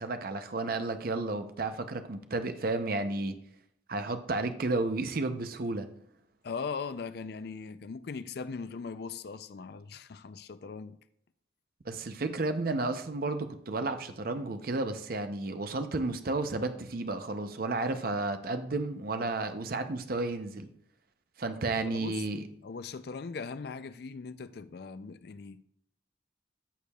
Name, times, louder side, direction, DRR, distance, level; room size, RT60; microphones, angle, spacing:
voice 1, 0.0-3.4 3.9-5.9 11.9-20.7 21.4-22.4, right 2 dB, 50° right, 0.6 m, -32 dB
voice 2, 6.4-11.0 21.8-22.1 22.6-25.6, left 5 dB, 55° left, 0.4 m, -39 dB
14.0 x 6.5 x 2.3 m
head